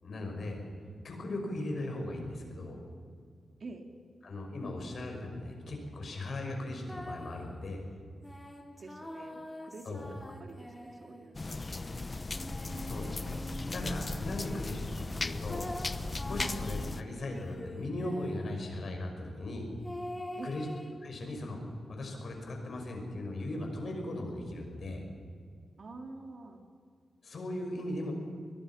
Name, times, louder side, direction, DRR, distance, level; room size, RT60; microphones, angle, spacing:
voice 1, 0.0-0.6 1.0-2.8 4.2-7.8 9.9-10.1 12.8-15.7 16.2-19.7 20.4-20.7 21.0-21.6 21.9-25.0 27.2-28.1, left 1 dB, 60° left, 3 dB, 5.6 m, -38 dB
Nameless child, 6.9-7.5 8.2-11.5 12.3-14.9 15.5-18.6 19.8-20.9, left 1 dB, 10° left, 2.6 m, -45 dB
voice 2, 8.8-12.1 16.4-16.6 20.4-20.6 25.8-26.6, right 3 dB, 55° right, 4 dB, 2.8 m, -47 dB
sound 1, 11.3-17.0, left 3 dB, 30° left, 0.8 m, -37 dB
22.0 x 22.0 x 5.9 m, 2.2 s
cardioid pair, 75°, 0 cm